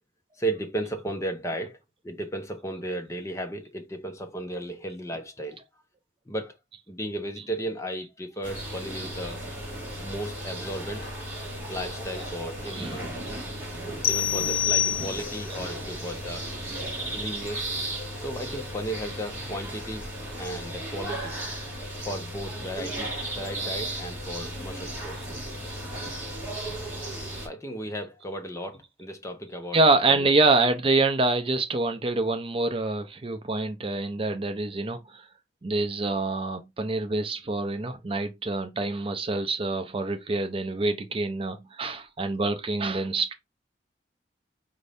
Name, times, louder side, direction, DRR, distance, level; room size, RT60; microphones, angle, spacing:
voice 1, 0.4-1.8 2.0-5.6 6.3-6.6 6.9-9.4 10.0-11.1 11.7-13.1 14.1-16.5 17.1-17.7 18.2-20.1 20.3-21.4 22.1-25.2 27.4-29.8 30.1-30.4, right 1 dB, 15° left, 0.7 m, -35 dB
sound 1, 8.4-27.5, right 1 dB, 10° right, 2.4 m, -35 dB
voice 2, 12.6-13.0 14.9-15.2 25.2-25.3 29.7-35.3 35.6-43.3, right 3 dB, 30° right, 0.5 m, -26 dB
sound 2, 14.0-15.6, left 10 dB, 55° left, 0.5 m, -26 dB
5.1 x 2.6 x 3.3 m
head